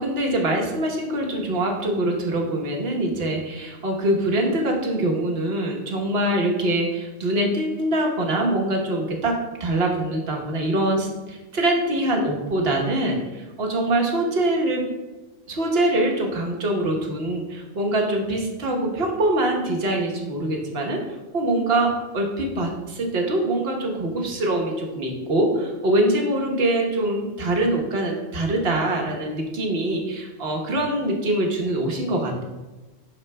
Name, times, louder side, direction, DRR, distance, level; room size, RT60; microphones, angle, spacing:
voice 1, 0.0-14.8 15.5-21.0 21.3-32.4, right 1 dB, 50° right, 1 dB, 1.2 m, -24 dB
11.0 x 4.4 x 2.2 m, 1.1 s
omnidirectional pair, 1.4 m